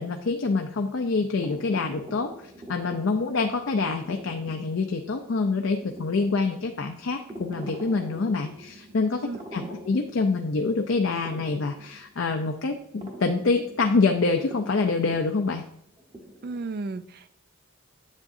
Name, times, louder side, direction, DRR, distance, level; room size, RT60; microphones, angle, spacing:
voice 1, 0.0-2.3 2.7-15.6, left 4 dB, 60° left, 4 dB, 0.5 m, -26 dB
sound 1, 1.2-16.7, equal, 20° right, 1.1 m, -45 dB
voice 2, 9.2-9.7 16.4-17.3, right 3 dB, 45° right, 13 dB, 0.3 m, -34 dB
8.4 x 7.3 x 2.6 m, 0.73 s
head